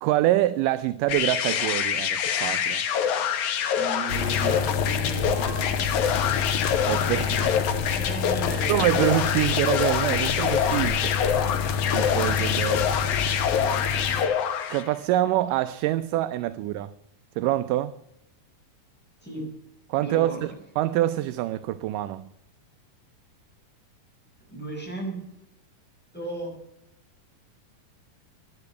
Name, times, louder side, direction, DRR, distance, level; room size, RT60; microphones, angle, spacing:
voice 1, 0.0-2.8 6.8-7.4 8.7-11.1 11.9-12.9 14.7-16.9 17.4-17.9 19.9-22.3, right 14 dB, 80° right, 2.1 m, -25 dB
sound 1, 1.1-14.9, left 8 dB, 65° left, 2.5 m, -26 dB
voice 2, 3.8-6.0 7.2-8.9 19.2-19.5 20.0-20.4 24.5-25.2 26.1-26.5, right 2 dB, 5° left, 6.0 m, -35 dB
sound 2, 4.1-14.3, left 6 dB, 85° left, 3.0 m, -28 dB
12.0 x 10.5 x 8.0 m
omnidirectional pair, 3.9 m